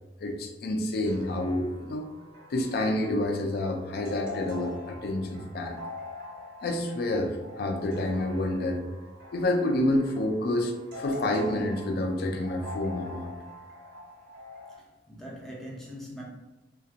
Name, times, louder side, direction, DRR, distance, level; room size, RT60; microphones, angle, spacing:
voice 1, 0.2-2.1 2.5-5.8 6.6-8.8 9.3-13.3, left 1 dB, 60° left, 4 dB, 0.4 m, -28 dB
sound 1, 1.1-14.8, left 3 dB, 75° right, 1.0 m, -43 dB
voice 2, 14.7-16.2, equal, ahead, -4 dB, 0.6 m, -42 dB
2.7 x 2.2 x 2.4 m, 1.0 s
head